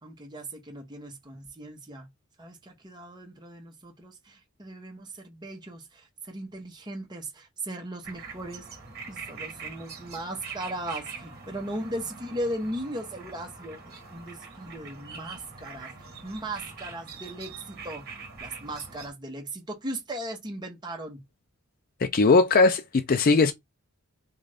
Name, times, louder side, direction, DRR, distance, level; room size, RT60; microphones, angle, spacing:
voice 1, 0.0-2.1 2.4-8.7 9.1-21.2, right 1 dB, 20° right, 0.9 m, -37 dB
sound 1, 8.0-19.1, right 5 dB, 45° right, 1.2 m, -43 dB
voice 2, 22.0-23.5, left 3 dB, 40° left, 0.4 m, -19 dB
3.7 x 2.5 x 3.3 m
head